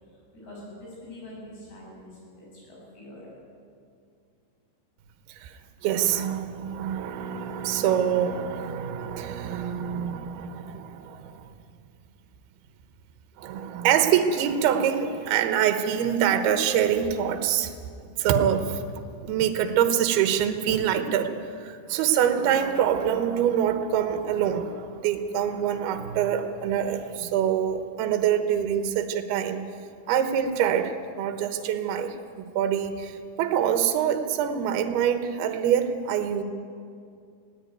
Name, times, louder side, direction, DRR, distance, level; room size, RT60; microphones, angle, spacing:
voice 1, 0.3-3.3, left 1 dB, 60° left, -4 dB, 10.0 m, -44 dB
voice 2, 5.8-11.4 13.4-17.7 18.2-18.8 19.2-21.3 21.6-29.6 30.1-36.4, right 9 dB, 70° right, 7 dB, 2.9 m, -25 dB
20.0 x 17.0 x 9.3 m, 2.3 s
omnidirectional pair, 5.4 m